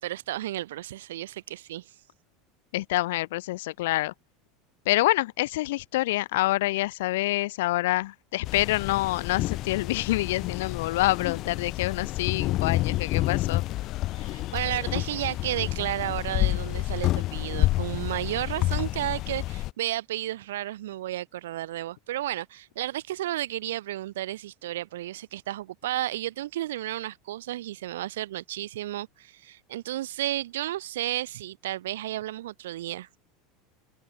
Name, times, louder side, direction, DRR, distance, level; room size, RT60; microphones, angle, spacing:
voice 1, 0.0-1.9 14.2-33.1, right 14 dB, 70° right, 3.7 m, -32 dB
voice 2, 2.7-4.1 4.9-13.6, left 18 dB, 65° left, 1.9 m, -27 dB
sound 1, 8.4-19.7, left 16 dB, 50° left, 5.4 m, -29 dB
figure-of-eight pair, 80°, 0 cm